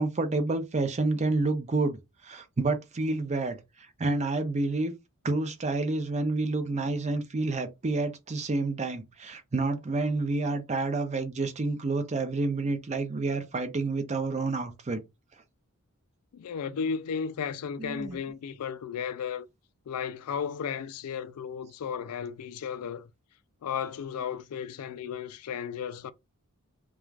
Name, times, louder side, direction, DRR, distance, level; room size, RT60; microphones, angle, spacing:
voice 1, 0.0-3.6 4.0-4.9 5.2-15.0 17.8-18.2, right 3 dB, 30° right, 0.5 m, -29 dB
voice 2, 16.3-19.5 19.9-23.1 23.6-26.1, left 7 dB, 80° left, 0.4 m, -34 dB
2.4 x 2.3 x 3.1 m
head